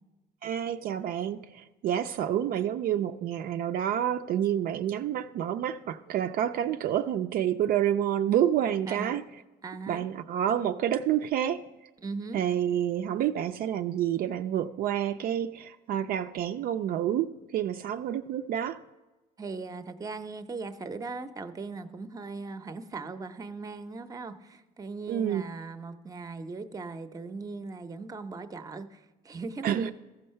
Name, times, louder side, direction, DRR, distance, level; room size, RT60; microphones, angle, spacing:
voice 1, 0.4-9.2 9.9-11.6 12.3-18.8 25.1-25.4 29.6-29.9, right 10 dB, 60° right, 0.4 m, -28 dB
voice 2, 8.9-9.2 9.6-10.1 12.0-12.4 19.4-29.9, right 3 dB, 20° right, 0.6 m, -39 dB
14.5 x 5.4 x 5.6 m
cardioid pair, 110°, 17 cm